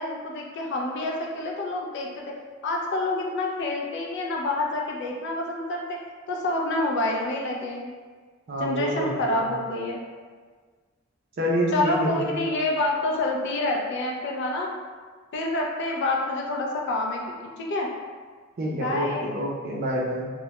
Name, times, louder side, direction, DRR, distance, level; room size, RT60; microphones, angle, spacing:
voice 1, 0.0-2.2 2.6-6.0 6.3-7.9 8.6-10.0 11.7-14.7 15.3-17.9 18.7-19.3, left 2 dB, 55° left, -1 dB, 0.3 m, -27 dB
voice 2, 8.5-9.5 11.4-12.4 18.6-20.3, equal, 45° right, -3 dB, 0.4 m, -27 dB
2.1 x 2.1 x 2.8 m, 1.5 s
head